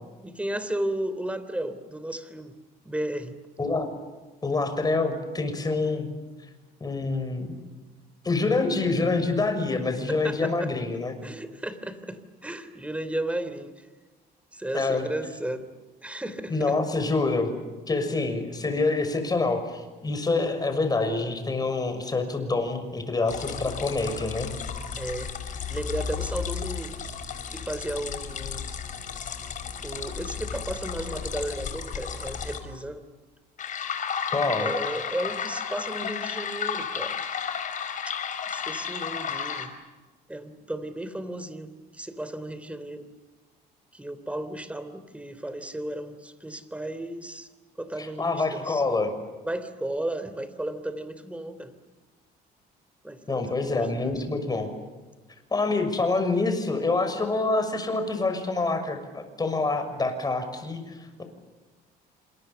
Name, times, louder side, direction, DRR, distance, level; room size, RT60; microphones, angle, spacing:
voice 1, 0.2-2.5 2.8-3.3 10.1-10.7 11.2-13.9 14.5-15.7 16.0-16.8 25.0-25.3 25.7-26.9 27.5-28.7 29.8-33.0 34.6-37.2 38.5-39.7 40.3-43.1 43.9-47.5 47.8-48.8 49.4-51.7 53.0-54.1, right 1 dB, 5° right, 12 dB, 3.2 m, -34 dB
voice 2, 4.4-6.1 6.8-7.6 8.2-11.2 14.7-15.1 16.5-17.6 17.9-24.5 34.3-34.7 48.0-49.1 53.3-54.7 55.5-61.2, left 3 dB, 25° left, 7 dB, 6.3 m, -26 dB
sound 1, 23.3-32.6 33.6-39.7, left 7 dB, 50° left, 4.5 m, -33 dB
29.0 x 27.0 x 7.0 m, 1.3 s
cardioid pair, 110°, 17 cm